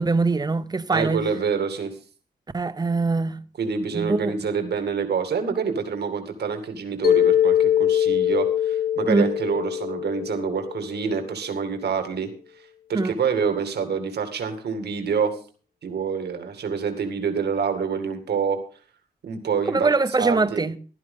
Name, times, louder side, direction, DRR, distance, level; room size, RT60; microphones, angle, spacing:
voice 1, 0.0-1.2 2.5-3.4 3.9-4.3 9.1-9.3 12.9-13.1 19.7-20.8, right 3 dB, 25° right, 0.8 m, -23 dB
voice 2, 0.9-1.9 3.6-12.3 12.9-15.4 15.8-18.6 19.2-20.7, right 6 dB, 85° right, 2.1 m, -27 dB
Mallet percussion, 7.0-11.2, left 10 dB, 65° left, 1.5 m, -22 dB
15.5 x 12.0 x 3.7 m
wide cardioid pair, 110°, 17 cm